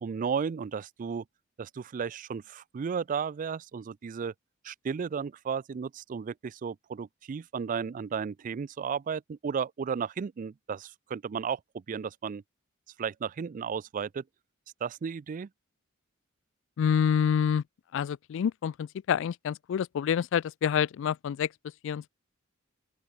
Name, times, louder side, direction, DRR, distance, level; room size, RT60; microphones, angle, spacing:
voice 1, 0.0-1.2 1.6-4.3 4.6-12.4 13.0-14.2 14.8-15.5, right 6 dB, 40° right, 0.3 m, -34 dB
voice 2, 16.8-17.6 17.9-21.5 21.8-22.1, left 8 dB, 65° left, 0.3 m, -27 dB
open air
head